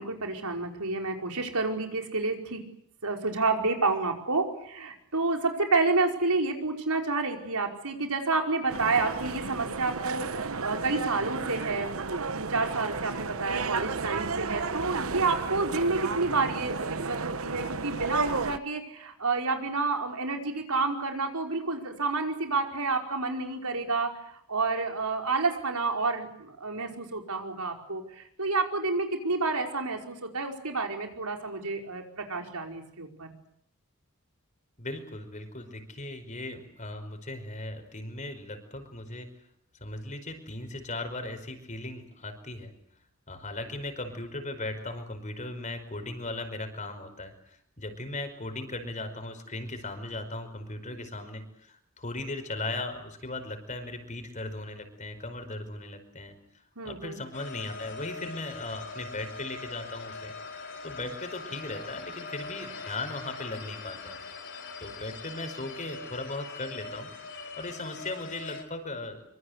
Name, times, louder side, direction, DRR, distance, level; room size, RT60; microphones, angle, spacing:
voice 1, 0.0-2.6 3.0-11.9 12.3-33.3 56.8-57.2, right 3 dB, 85° right, 3 dB, 5.0 m, -29 dB
sound 1, 8.7-18.6, right 4 dB, 65° right, 1.1 m, -33 dB
voice 2, 34.8-39.3 39.8-42.7 43.3-56.3 56.8-64.2 64.8-67.1 67.6-69.2, left 2 dB, 35° left, 7 dB, 5.1 m, -38 dB
sound 2, 57.3-68.6, left 4 dB, 55° left, 5.3 m, -42 dB
25.5 x 25.0 x 8.1 m, 0.71 s
head